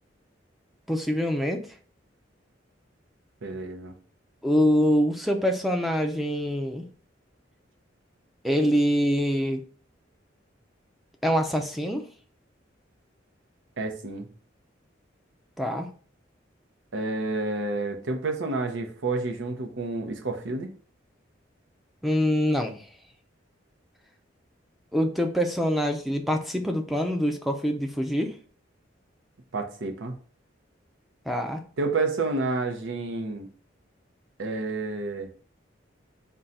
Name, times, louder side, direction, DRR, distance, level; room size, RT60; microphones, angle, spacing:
voice 1, 0.9-1.7 4.4-6.9 8.4-9.6 11.2-12.1 15.6-15.9 22.0-22.8 24.9-28.3 31.3-31.6, equal, ahead, 4 dB, 0.4 m, -25 dB
voice 2, 3.4-3.9 13.8-14.3 16.9-20.7 29.5-30.2 31.8-33.5 34.4-35.3, right 3 dB, 80° right, 6 dB, 0.7 m, -29 dB
3.8 x 2.3 x 4.1 m, 0.41 s
head